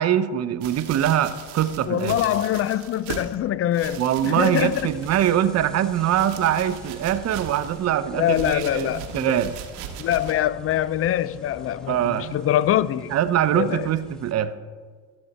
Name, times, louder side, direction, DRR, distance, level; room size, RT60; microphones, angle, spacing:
voice 1, 0.0-2.2 4.0-9.5 11.9-12.3 13.1-14.6, right 10 dB, 45° right, 0.7 m, -23 dB
sound 1, 0.6-3.4 3.7-5.5 5.9-7.9 8.3-10.4 11.1-11.2, right 9 dB, 90° right, 1.0 m, -39 dB
voice 2, 1.9-4.9 8.1-9.4 10.0-13.1 13.5-13.9, left 12 dB, 40° left, 0.4 m, -24 dB
sound 2, 4.3-14.3, right 1 dB, ahead, 1.4 m, -46 dB
13.0 x 7.1 x 4.1 m
supercardioid pair, 95°, 36 cm